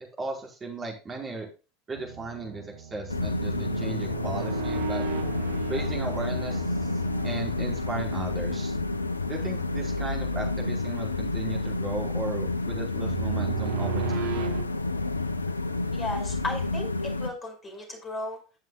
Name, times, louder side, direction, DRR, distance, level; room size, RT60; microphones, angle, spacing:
voice 1, 0.2-1.5 1.9-5.0 5.7-6.6 7.2-8.7 9.3-14.4, right 3 dB, 25° right, 0 dB, 4.8 m, -36 dB
sound 1, 1.9-14.6, right 6 dB, 65° right, 1.4 m, -36 dB
sound 2, 3.1-17.3, left 2 dB, 85° left, 0.5 m, -30 dB
voice 2, 15.9-16.9 17.2-18.4, left 2 dB, 20° left, 3 dB, 5.1 m, -34 dB
15.5 x 7.5 x 2.3 m, 0.33 s
figure-of-eight pair, 80°, 0 cm